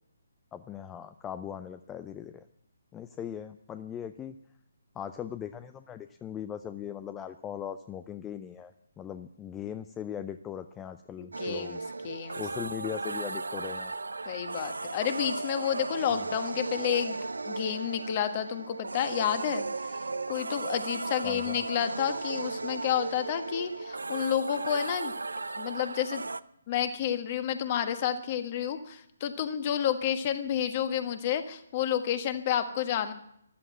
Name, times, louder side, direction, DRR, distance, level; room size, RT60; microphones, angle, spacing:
voice 1, 0.5-2.4 2.9-4.4 5.0-11.8 12.3-14.0 16.2-16.3 21.2-21.6, left 9 dB, 15° left, 11 dB, 0.5 m, -39 dB
voice 2, 11.2-12.4 14.2-17.2 17.4-20.0 20.3-25.1 25.6-26.2 26.7-33.1, left 9 dB, 30° left, 9 dB, 1.5 m, -30 dB
sound 1, 11.3-26.4, right 3 dB, 70° right, 0.6 m, -36 dB
14.5 x 13.0 x 7.5 m, 0.73 s
figure-of-eight pair, 140°, 0 cm